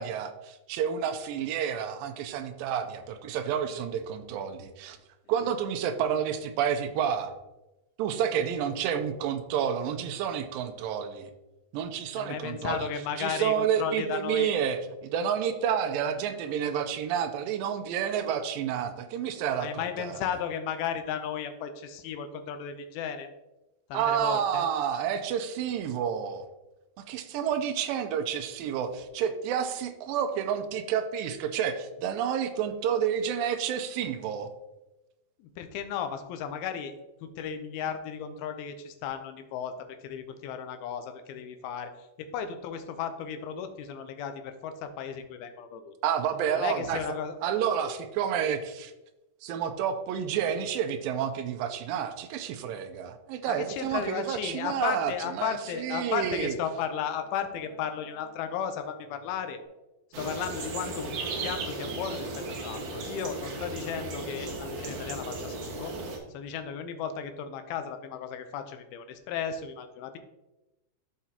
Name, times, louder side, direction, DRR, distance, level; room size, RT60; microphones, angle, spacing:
voice 1, 0.0-5.0 5.3-7.3 8.0-11.3 11.7-12.9 13.2-20.2 23.9-26.5 27.1-34.5 46.0-47.0 47.4-48.9 49.4-56.6, right 8 dB, 80° right, 7 dB, 2.2 m, -30 dB
voice 2, 12.2-14.5 19.6-23.3 23.9-24.7 35.4-36.9 37.2-39.8 40.0-41.9 42.2-45.9 46.6-47.3 53.5-59.6 60.2-65.9 66.3-70.2, left 7 dB, 80° left, 8 dB, 2.6 m, -35 dB
sound 1, 54.5-59.6, left 2 dB, 40° right, 1.6 m, -53 dB
sound 2, 60.1-66.2, right 2 dB, 65° right, 2.5 m, -36 dB
14.0 x 4.9 x 2.9 m, 1.0 s
omnidirectional pair, 4.4 m